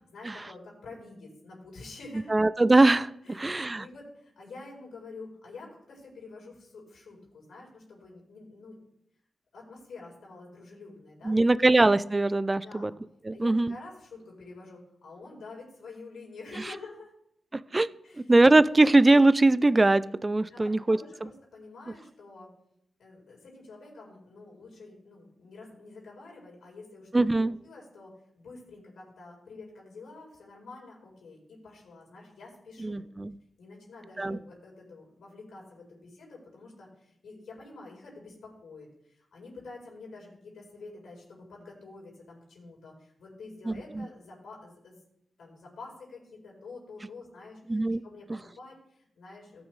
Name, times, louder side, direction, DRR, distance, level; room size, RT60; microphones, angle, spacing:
voice 1, 0.1-2.3 3.2-8.7 9.5-11.7 12.6-12.9 13.3-17.1 18.0-18.3 20.5-22.5 23.0-28.1 28.4-33.0 33.6-44.9 45.4-49.6, left 3 dB, 85° left, -3 dB, 4.3 m, -48 dB
voice 2, 2.3-3.8 11.2-12.9 13.2-13.8 17.5-17.9 18.3-21.0 27.1-27.6 32.8-33.4 34.2-34.4 43.7-44.1 47.7-48.0 48.3-48.4, right 2 dB, 20° right, 17 dB, 0.3 m, -22 dB
18.0 x 6.1 x 3.2 m, 0.76 s
wide cardioid pair, 125°, 0 cm